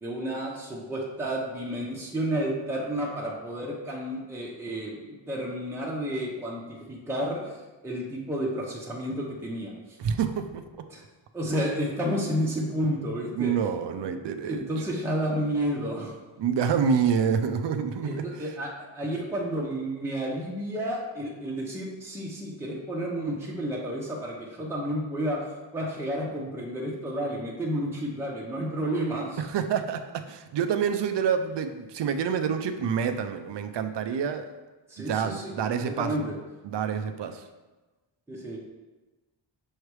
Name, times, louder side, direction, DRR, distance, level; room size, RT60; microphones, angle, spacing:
voice 1, 0.0-9.7 10.9-11.0 11.3-13.5 14.0-14.2 14.5-16.2 18.0-29.4 34.9-36.4 38.3-38.6, equal, 5° right, -3 dB, 0.8 m, -31 dB
voice 2, 10.0-10.6 13.4-14.6 16.4-18.5 29.4-34.5 35.1-36.3 36.6-37.5, right 7 dB, 70° right, 8 dB, 0.6 m, -27 dB
6.4 x 3.3 x 4.7 m, 1.2 s
wide cardioid pair, 130°, 44 cm